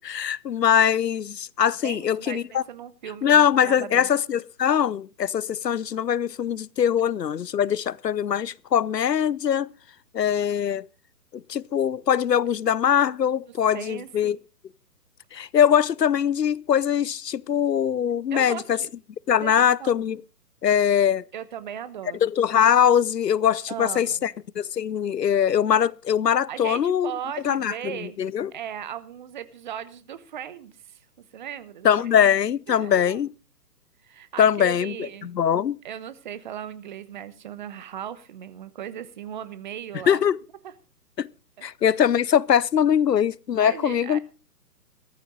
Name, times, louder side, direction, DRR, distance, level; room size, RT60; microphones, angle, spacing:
voice 1, 0.0-2.6 3.2-9.7 10.1-10.9 11.5-14.4 15.3-18.8 19.3-20.2 20.6-21.2 22.2-27.1 27.4-28.5 31.8-33.3 34.4-35.8 40.1-40.4 41.2-41.3 41.6-44.2, left 9 dB, 85° left, 0.7 m, -22 dB
voice 2, 1.8-4.1 13.7-14.4 18.3-18.9 19.4-19.9 21.3-22.2 23.7-24.3 26.5-28.2 28.5-31.0 31.3-32.2 32.7-33.2 34.0-35.3 35.8-40.2 40.6-40.7 41.6-41.7 43.6-44.2, right 9 dB, 30° right, 0.9 m, -37 dB
15.5 x 14.0 x 3.9 m
figure-of-eight pair, 135°, 48 cm